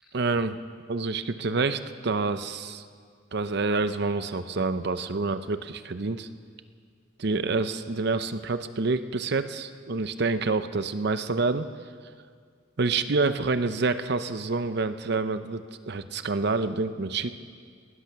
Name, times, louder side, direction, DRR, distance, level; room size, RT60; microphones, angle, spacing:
voice 1, 0.1-0.6 0.9-2.8 3.3-6.3 7.2-11.7 12.8-17.3, right 3 dB, 55° right, 11 dB, 0.7 m, -27 dB
19.0 x 12.5 x 5.8 m, 2.1 s
head